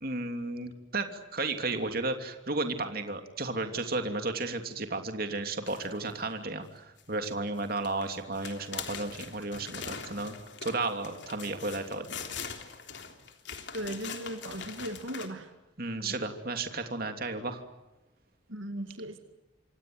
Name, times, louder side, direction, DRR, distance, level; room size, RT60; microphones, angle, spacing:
voice 1, 0.0-10.3 10.6-12.2 15.8-17.6, right 3 dB, 50° right, 6 dB, 2.9 m, -33 dB
sound 1, 5.7-6.2 7.0-7.3 7.6-15.3, left 6 dB, 60° left, 3.4 m, -42 dB
voice 2, 13.7-15.5 16.0-16.1 18.5-19.2, right 1 dB, 75° right, 7 dB, 2.3 m, -37 dB
27.5 x 26.5 x 7.9 m, 1.0 s
head